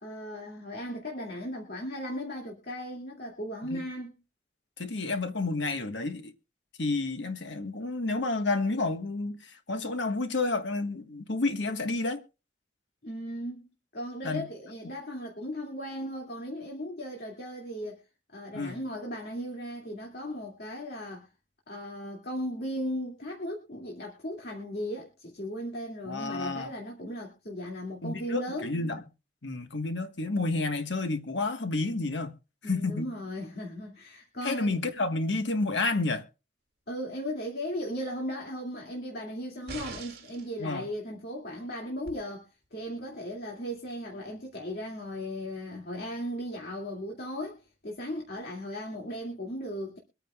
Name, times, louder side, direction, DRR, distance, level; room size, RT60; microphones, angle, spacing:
voice 1, 0.0-4.2 13.0-13.7 13.9-18.0 18.3-21.3 21.7-28.7 32.6-34.8 36.9-50.0, equal, 60° left, 2.3 m, -37 dB
voice 2, 4.8-6.3 6.8-12.2 14.2-14.5 18.5-18.8 26.1-26.7 28.0-29.0 29.4-32.3 32.6-33.1 34.4-36.2 40.6-40.9, left 3 dB, 80° left, 1.4 m, -30 dB
sound 1, 39.7-40.5 42.1-42.2, right 4 dB, 60° right, 2.6 m, -41 dB
24.0 x 9.2 x 2.3 m
head